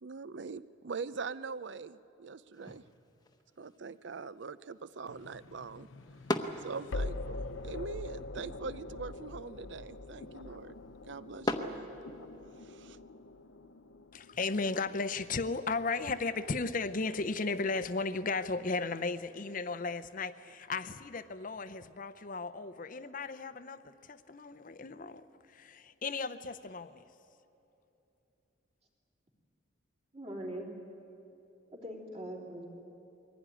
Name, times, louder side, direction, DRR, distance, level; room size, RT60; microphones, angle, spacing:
voice 1, 0.0-2.8 3.6-5.9 6.6-10.7 11.1-11.9 12.6-13.0, right 5 dB, 60° right, 0.5 m, -43 dB
sound 1, 2.5-12.6, left 1 dB, 20° left, 1.0 m, -42 dB
sound 2, 5.1-16.1, left 2 dB, 75° left, 0.7 m, -44 dB
voice 2, 14.1-27.0, left 3 dB, 40° left, 0.6 m, -35 dB
voice 3, 30.1-30.7 31.7-32.7, right 1 dB, 35° right, 3.5 m, -41 dB
22.5 x 16.5 x 10.0 m
head